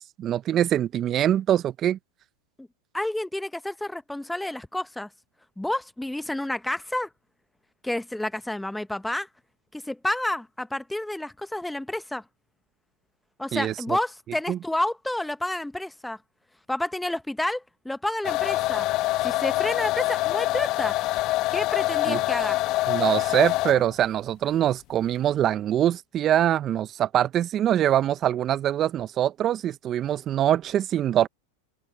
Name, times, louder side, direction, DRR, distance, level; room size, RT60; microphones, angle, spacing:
voice 1, 0.2-2.0 13.5-13.7 14.5-14.6 22.1-22.2 22.9-31.3, right 11 dB, 35° right, 0.8 m, -23 dB
voice 2, 2.9-5.1 5.6-7.1 7.8-9.3 9.7-12.2 13.4-16.2 16.7-18.9 19.2-21.0 21.5-22.6, left 1 dB, 5° left, 1.0 m, -30 dB
sound 1, 18.2-23.9, left 18 dB, 45° left, 0.8 m, -25 dB
open air
hypercardioid pair, 100°, 0 cm